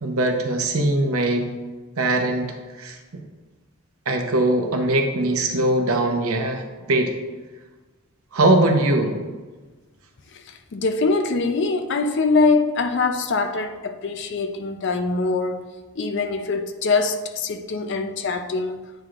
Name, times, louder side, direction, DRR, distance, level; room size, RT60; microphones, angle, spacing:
voice 1, 0.0-1.5 2.0-3.0 4.1-6.6 6.9-7.1 8.3-9.2, right 1 dB, 70° right, 0.9 m, -21 dB
voice 2, 10.3-15.6 16.0-18.8, left 3 dB, 50° left, 0.5 m, -23 dB
8.9 x 4.9 x 2.5 m
head